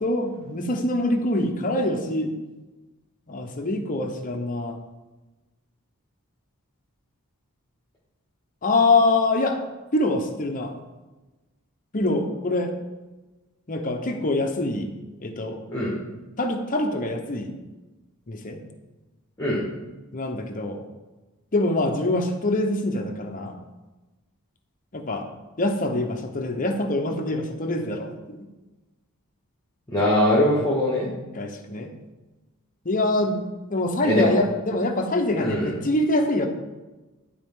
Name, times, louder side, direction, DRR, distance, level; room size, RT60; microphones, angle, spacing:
voice 1, 0.0-2.4 3.3-4.8 8.6-9.6 9.9-10.8 11.9-12.7 13.7-14.9 15.2-15.6 16.4-17.5 18.3-18.6 20.1-20.8 21.5-23.6 24.9-25.2 25.6-28.4 31.3-31.9 32.8-33.4 33.7-36.5, left 2 dB, 40° left, 4 dB, 0.9 m, -24 dB
voice 2, 29.9-31.1 34.0-34.4 35.4-35.7, left 1 dB, 15° left, -6 dB, 1.6 m, -21 dB
12.0 x 4.3 x 3.7 m, 1.2 s
head